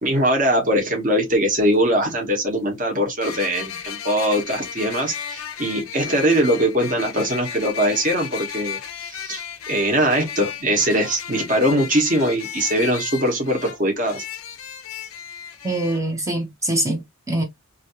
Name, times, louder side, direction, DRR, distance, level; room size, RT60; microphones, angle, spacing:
voice 1, 0.0-14.2, right 1 dB, 40° right, 1.4 m, -21 dB
sound 1, 1.6-1.7 3.2-16.0, left 8 dB, 75° left, 0.6 m, -34 dB
voice 2, 15.6-17.4, right 1 dB, 15° right, 0.8 m, -24 dB
3.0 x 2.7 x 2.9 m
head